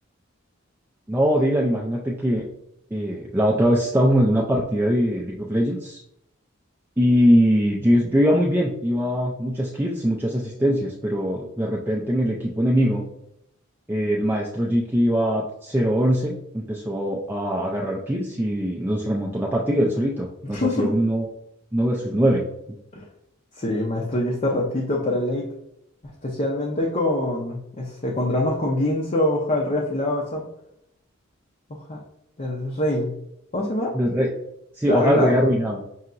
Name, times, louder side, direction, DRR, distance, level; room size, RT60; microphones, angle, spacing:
voice 1, 1.1-2.4 2.9-6.0 7.0-13.1 13.9-21.3 21.7-22.4 33.9-34.3 34.8-35.8, equal, 10° right, -2 dB, 0.4 m, -22 dB
voice 2, 20.5-20.9 22.9-23.0 23.6-25.5 26.2-30.4 31.7-32.0 32.4-33.1 33.5-33.9 34.9-35.3, left 1 dB, 35° left, -2 dB, 0.6 m, -24 dB
5.5 x 2.8 x 2.5 m, 0.77 s
head